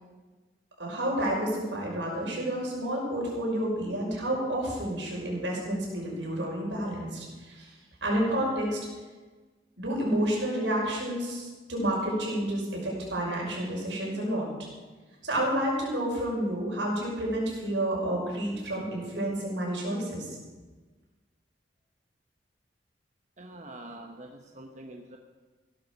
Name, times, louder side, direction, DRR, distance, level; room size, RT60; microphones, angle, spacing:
voice 1, 0.8-7.7 8.0-8.8 9.8-14.5 15.2-20.4, right 1 dB, 90° right, -2 dB, 5.8 m, -30 dB
voice 2, 23.4-25.2, right 1 dB, 40° right, 3 dB, 1.0 m, -45 dB
16.0 x 12.0 x 5.4 m, 1.3 s
head